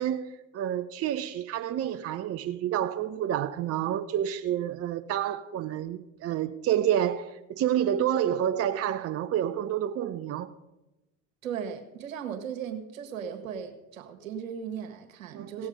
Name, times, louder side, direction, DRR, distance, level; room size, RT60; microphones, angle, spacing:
voice 1, 0.0-10.5 15.3-15.7, right 10 dB, 35° right, 0.7 m, -29 dB
voice 2, 11.4-15.7, right 7 dB, 80° right, 1.6 m, -37 dB
17.5 x 7.1 x 5.2 m
hypercardioid pair, 70°, 39 cm